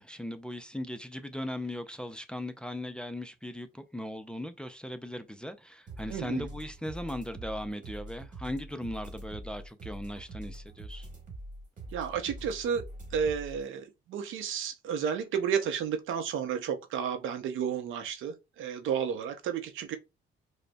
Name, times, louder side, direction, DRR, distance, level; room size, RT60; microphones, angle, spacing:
voice 1, 0.0-11.1, left 1 dB, 5° left, 0.4 m, -38 dB
sound 1, 5.9-13.6, right 1 dB, 40° right, 1.4 m, -44 dB
voice 2, 6.1-6.5 11.9-12.8 13.1-20.0, right 7 dB, 80° right, 0.6 m, -32 dB
4.9 x 2.1 x 2.2 m
cardioid pair, 90°, 20 cm